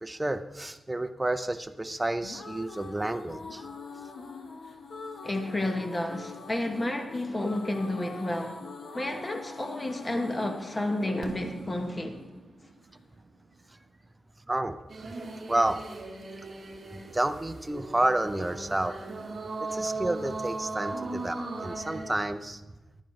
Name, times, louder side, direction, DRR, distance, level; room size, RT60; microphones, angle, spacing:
voice 1, 0.0-3.6 14.5-14.8 15.1-15.2 15.5-15.8 17.1-19.0 19.6-22.6, right 1 dB, 10° right, 9 dB, 0.5 m, -30 dB
sound 1, 2.0-13.0, left 4 dB, 70° left, 1.1 m, -44 dB
voice 2, 5.2-8.6 8.9-12.2 19.7-19.8, left 1 dB, 20° left, 5 dB, 0.9 m, -31 dB
Fireworks, 11.2-15.1, right 4 dB, 65° right, 0.8 m, -46 dB
sound 2, 14.9-22.2, right 3 dB, 35° right, 2.2 m, -38 dB
14.5 x 10.5 x 3.1 m, 1.1 s
wide cardioid pair, 170°, 0 cm